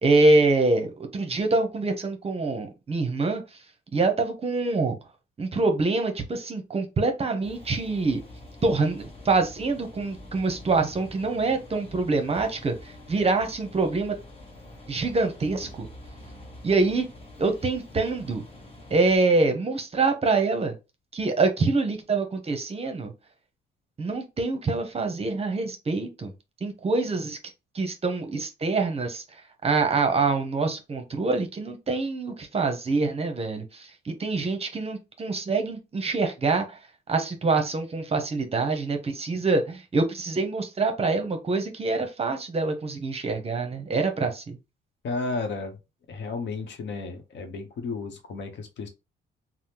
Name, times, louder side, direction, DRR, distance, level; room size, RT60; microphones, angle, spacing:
voice 1, 0.0-3.4 3.9-5.0 5.4-8.2 8.6-14.2 14.9-15.9 16.6-17.1 17.4-18.4 18.9-20.7 21.1-23.1 24.0-26.3 26.6-27.4 27.7-29.2 29.6-36.8 37.1-44.6, right 3 dB, 30° right, 0.7 m, -25 dB
sound 1, 7.4-19.2, left 1 dB, 30° left, 1.1 m, -46 dB
voice 2, 45.0-45.8 46.1-48.9, left 3 dB, 65° left, 0.8 m, -33 dB
3.4 x 2.0 x 2.8 m
cardioid pair, 90°, 20 cm